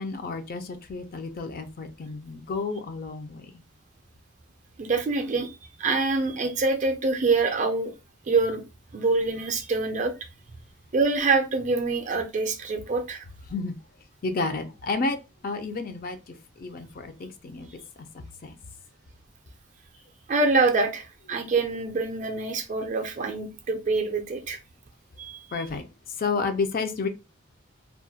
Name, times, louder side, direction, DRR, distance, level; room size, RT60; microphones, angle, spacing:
voice 1, 0.0-3.5 13.5-13.7 14.2-15.2 15.4-17.7 18.4-18.5 25.5-25.8 26.2-27.1, left 4 dB, 45° left, 0.4 m, -31 dB
voice 2, 4.8-5.5 5.8-7.9 8.3-8.6 8.9-10.1 10.9-13.2 20.3-24.6 25.2-25.6, right 3 dB, 35° right, 0.4 m, -25 dB
2.3 x 2.1 x 2.6 m
head